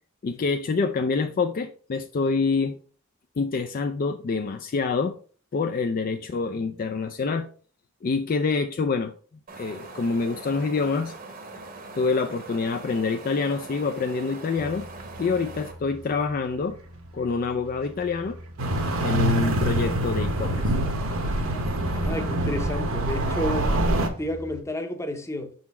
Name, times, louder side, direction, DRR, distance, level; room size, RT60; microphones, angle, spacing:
voice 1, 0.2-2.8 3.4-5.2 5.5-7.5 8.0-9.1 9.6-11.1 12.0-14.9 15.2-16.7 17.1-18.4 19.0-20.7, left 4 dB, 40° left, 0.3 m, -26 dB
Wind, 9.5-15.7, right 3 dB, 40° right, 0.9 m, -41 dB
sound 1, 14.6-24.6, right 1 dB, 85° right, 1.2 m, -44 dB
sound 2, 18.6-24.1, right 1 dB, 65° right, 1.0 m, -25 dB
voice 2, 21.9-23.8 24.2-25.5, left 1 dB, 15° left, 0.7 m, -31 dB
5.8 x 4.0 x 4.2 m
head